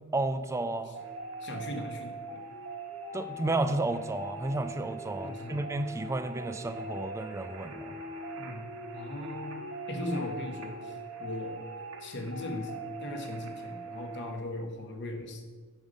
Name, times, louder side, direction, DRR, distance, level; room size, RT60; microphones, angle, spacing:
voice 1, 0.1-1.0 3.1-8.0, right 2 dB, 15° right, 10 dB, 0.3 m, -32 dB
sound 1, 0.9-14.3, right 2 dB, 65° right, 1.0 m, -41 dB
voice 2, 1.4-2.4 5.2-5.6 8.4-8.7 8.9-9.6 9.9-10.9 11.2-11.6 12.0-15.4, left 1 dB, 55° left, 4 dB, 1.0 m, -38 dB
6.2 x 5.3 x 5.1 m, 1.4 s
head